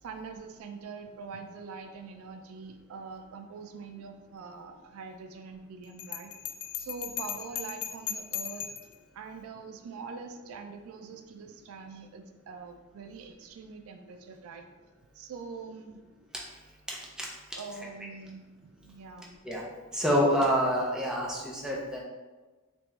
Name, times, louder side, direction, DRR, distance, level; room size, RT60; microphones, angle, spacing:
voice 1, 0.0-6.3 6.8-8.7 9.1-14.6 15.1-16.0 17.5-19.4, right 5 dB, 70° right, 6 dB, 0.3 m, -44 dB
Bell, 6.0-8.9, left 10 dB, 70° left, 0.3 m, -37 dB
voice 2, 16.9-17.3 19.4-19.6 19.9-22.0, equal, 5° right, -3 dB, 0.5 m, -27 dB
3.5 x 2.9 x 3.1 m, 1.3 s
head